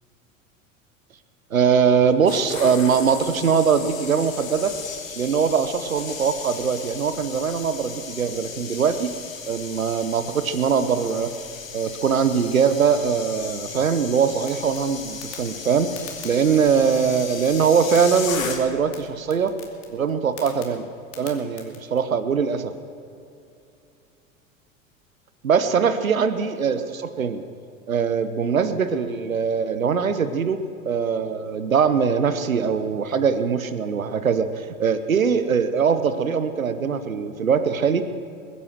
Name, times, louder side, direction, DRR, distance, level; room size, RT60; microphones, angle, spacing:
voice 1, 1.5-4.7 5.2-9.1 9.5-11.3 11.7-16.0 16.2-19.5 19.9-20.9 21.2-22.7 25.4-27.4 27.9-30.6 30.8-38.1, right 6 dB, 85° right, 11 dB, 1.0 m, -22 dB
sound 1, 2.0-18.9 19.2-19.5, left 6 dB, 75° left, 1.8 m, -36 dB
sound 2, 14.4-22.0, left 7 dB, 60° left, 2.6 m, -46 dB
21.0 x 9.9 x 6.5 m, 2.6 s
figure-of-eight pair, 80°, 40 cm